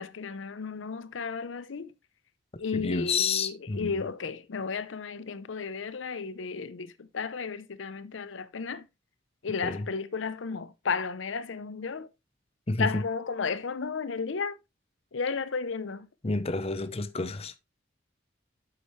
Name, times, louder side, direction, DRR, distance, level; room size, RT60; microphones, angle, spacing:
voice 1, 0.0-1.9 2.6-8.9 9.4-12.1 12.8-14.6 15.1-16.1, left 5 dB, 75° left, 0.6 m, -33 dB
voice 2, 2.7-4.0 9.6-9.9 12.7-13.0 16.2-17.6, left 4 dB, 30° left, 0.7 m, -29 dB
8.6 x 7.8 x 3.1 m
head